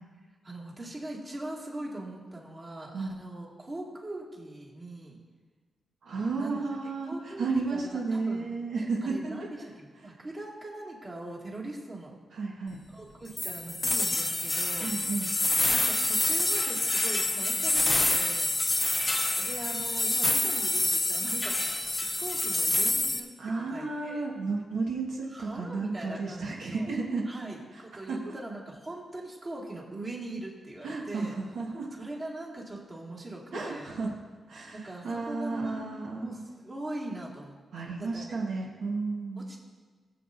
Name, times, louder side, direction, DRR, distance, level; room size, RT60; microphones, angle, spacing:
voice 1, 0.4-5.2 6.3-6.6 7.0-8.5 9.0-12.2 12.9-14.9 15.7-18.5 19.4-21.6 22.0-23.3 23.6-24.3 25.3-26.9 27.3-31.3 31.9-33.9 34.7-35.9 36.2-38.4 39.4-39.6, right 2 dB, 30° right, -4 dB, 2.0 m, -41 dB
voice 2, 6.0-9.3 12.3-12.8 14.8-15.3 23.4-27.3 28.1-28.3 30.8-31.9 33.5-34.2 34.5-34.8 35.0-36.3 37.7-39.5, right 3 dB, 80° right, -2 dB, 1.4 m, -32 dB
sound 1, 13.4-23.2, left 2 dB, 20° left, 0.6 m, -27 dB
18.0 x 7.8 x 2.6 m, 1.4 s
wide cardioid pair, 130°, 0 cm